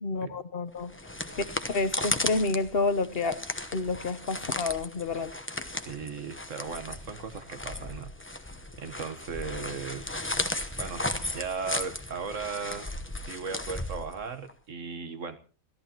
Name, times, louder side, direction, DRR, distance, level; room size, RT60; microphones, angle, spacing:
voice 1, 0.0-0.9 1.3-3.4 3.7-5.3, left 3 dB, 45° left, 1.1 m, -29 dB
sound 1, 0.8-14.5, left 1 dB, 10° left, 0.8 m, -35 dB
voice 2, 5.9-8.1 8.8-10.3 10.8-11.1 11.3-12.9 13.3-15.4, right 5 dB, 65° right, 1.6 m, -37 dB
28.0 x 14.0 x 2.9 m
omnidirectional pair, 1.5 m